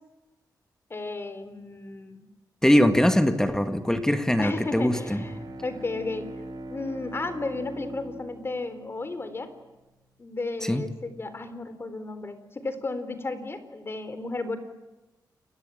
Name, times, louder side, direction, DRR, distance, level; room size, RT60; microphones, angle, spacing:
voice 1, 0.9-2.3 4.4-6.3 6.7-9.5 10.2-14.6, left 3 dB, 35° left, 11 dB, 4.0 m, -33 dB
voice 2, 2.6-5.2 10.6-10.8, equal, 5° left, 8 dB, 2.0 m, -22 dB
Bowed string instrument, 4.6-9.7, right 1 dB, 65° right, 4.4 m, -41 dB
29.0 x 22.5 x 9.3 m, 1.1 s
wide cardioid pair, 105°, 7 cm